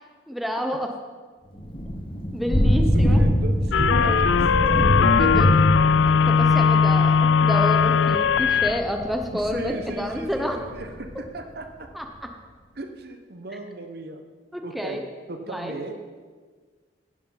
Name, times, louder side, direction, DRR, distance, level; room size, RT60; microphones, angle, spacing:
voice 1, 0.3-0.9 2.3-3.2 3.9-4.5 5.0-5.6 5.9-10.6 11.9-12.1 14.5-15.0 15.5-15.8, equal, ahead, 3 dB, 0.8 m, -29 dB
Thunder / Rain, 1.6-11.1, equal, 30° left, 1.1 m, -24 dB
voice 2, 2.9-5.0 9.3-11.9 12.7-14.2 14.6-15.0 15.3-16.1, right 2 dB, 60° right, 6 dB, 1.0 m, -36 dB
sound 1, 3.7-8.8, left 6 dB, 75° left, 0.4 m, -19 dB
11.0 x 8.4 x 5.6 m, 1.5 s
head